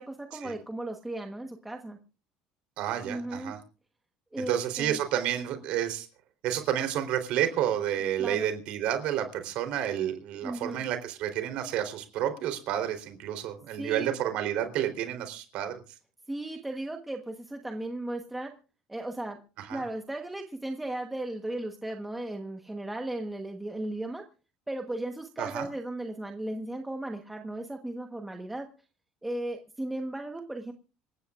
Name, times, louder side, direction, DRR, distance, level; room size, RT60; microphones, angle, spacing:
voice 1, 0.0-2.0 3.0-3.5 4.3-5.0 8.2-8.5 10.4-10.8 13.8-14.1 16.3-18.5 18.9-19.4 19.7-24.2 24.7-28.7 29.2-30.7, right 1 dB, 5° right, 3 dB, 1.2 m, -36 dB
voice 2, 2.8-3.6 4.4-6.1 6.4-15.7 19.6-19.8 25.4-25.7, right 11 dB, 55° right, 7 dB, 3.6 m, -30 dB
27.0 x 15.0 x 2.5 m, 0.37 s
cardioid pair, 180°, 2 cm